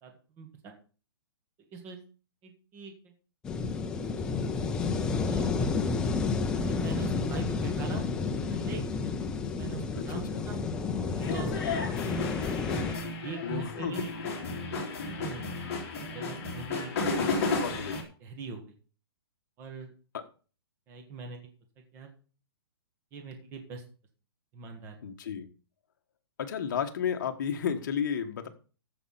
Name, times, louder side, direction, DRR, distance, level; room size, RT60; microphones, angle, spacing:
voice 1, 0.0-0.8 1.7-2.0 2.4-2.9 5.2-5.5 6.5-8.0 8.5-9.1 9.5-10.6 11.0-12.5 13.1-14.1 14.7-15.4 15.9-16.9 18.2-18.7 19.6-19.9 20.9-21.4 21.9-22.1 23.1-23.8 24.5-25.0, right 5 dB, 15° right, 4 dB, 1.4 m, -41 dB
sound 1, 3.4-12.9, left 4 dB, 5° left, 0.4 m, -31 dB
sound 2, 11.2-18.0, left 3 dB, 35° left, 3.2 m, -33 dB
voice 2, 13.4-14.1 17.2-17.3 17.6-18.0 25.0-25.5 26.4-28.5, left 7 dB, 50° left, 6 dB, 1.5 m, -32 dB
14.0 x 5.4 x 5.7 m, 0.38 s
hypercardioid pair, 175°, 13 cm